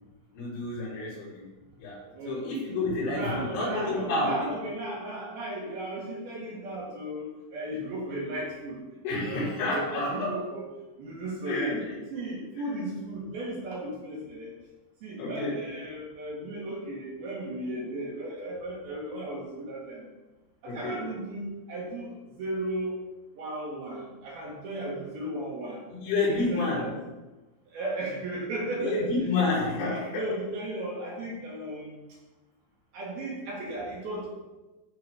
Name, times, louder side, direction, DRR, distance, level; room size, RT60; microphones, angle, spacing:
voice 1, 0.3-1.4 1.8-4.5 9.0-10.4 11.5-12.0 15.2-15.7 20.7-21.1 25.9-27.0 28.8-30.3, left 2 dB, 70° left, -7 dB, 6.3 m, -29 dB
voice 2, 2.1-2.5 3.0-8.8 9.1-9.4 9.7-10.6 11.0-11.7 12.1-14.5 15.0-20.1 20.6-23.0 23.4-25.8 26.3-26.9 27.7-29.0 30.1-32.0 32.9-34.3, right 1 dB, 55° right, -4 dB, 3.3 m, -35 dB
14.0 x 4.7 x 5.0 m, 1.1 s
omnidirectional pair, 5.8 m